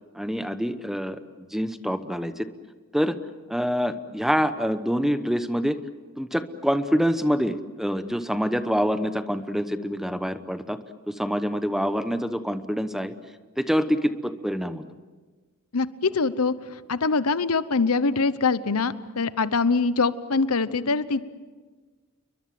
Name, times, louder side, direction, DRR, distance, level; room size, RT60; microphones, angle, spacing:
voice 1, 0.1-2.5 2.9-3.2 3.5-5.8 6.2-10.8 11.1-13.1 13.6-14.8, equal, ahead, 11 dB, 1.0 m, -26 dB
voice 2, 15.7-16.5 16.9-21.2, left 4 dB, 85° left, 15 dB, 1.0 m, -23 dB
29.5 x 23.0 x 7.7 m, 1.4 s
head